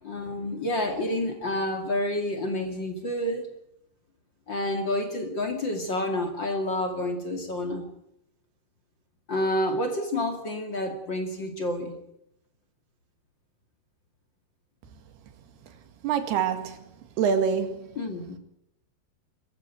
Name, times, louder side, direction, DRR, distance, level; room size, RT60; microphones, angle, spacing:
voice 1, 0.0-3.5 4.5-7.9 9.3-12.0 18.0-18.4, left 1 dB, 35° left, 2.6 m, -29 dB
voice 2, 16.0-16.8 17.2-17.9, right 7 dB, 90° right, 4.1 m, -25 dB
23.0 x 14.5 x 9.2 m
omnidirectional pair, 4.5 m